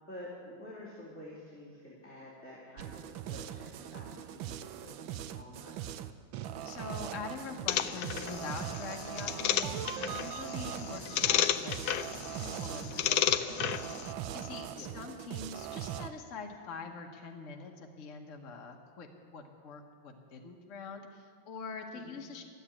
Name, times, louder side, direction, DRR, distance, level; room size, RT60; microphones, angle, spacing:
voice 1, 0.1-5.8 14.7-14.9 21.9-22.2, left 1 dB, 5° left, -8 dB, 2.5 m, -49 dB
sound 1, 2.8-16.1, right 10 dB, 80° right, 1.3 m, -41 dB
voice 2, 6.6-13.6 14.3-22.4, left 4 dB, 45° left, 2 dB, 1.2 m, -44 dB
sound 2, 7.7-14.1, left 10 dB, 75° left, 0.9 m, -33 dB
13.0 x 8.1 x 9.7 m, 2.1 s
omnidirectional pair, 2.2 m